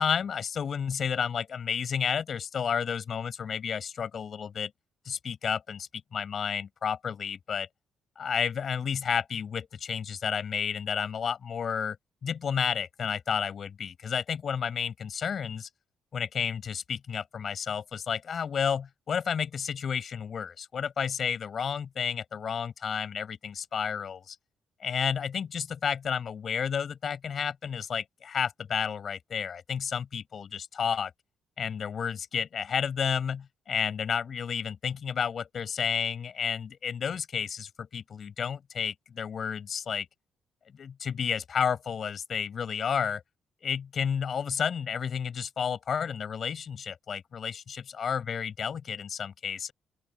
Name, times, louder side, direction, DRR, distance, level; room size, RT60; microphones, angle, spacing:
voice 1, 0.0-4.7 5.0-7.7 8.2-12.0 12.2-15.7 16.1-24.4 24.8-31.1 31.6-40.1 40.7-43.2 43.6-49.7, left 7 dB, 50° left, 7.8 m, -31 dB
open air
cardioid pair, 90°, 0 cm